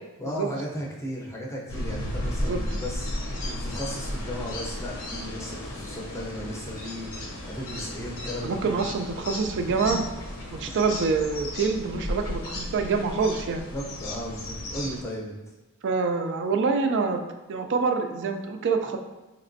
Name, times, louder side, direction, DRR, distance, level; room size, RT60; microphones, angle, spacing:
voice 1, 0.2-8.8 13.7-15.4, equal, 15° left, -2 dB, 0.6 m, -36 dB
sound 1, 1.7-15.0, left 1 dB, 60° left, 0.7 m, -34 dB
voice 2, 8.4-10.0 10.5-13.6 15.8-17.2 17.5-19.0, right 4 dB, 55° right, 6 dB, 0.3 m, -26 dB
4.1 x 2.9 x 2.6 m, 1.1 s
head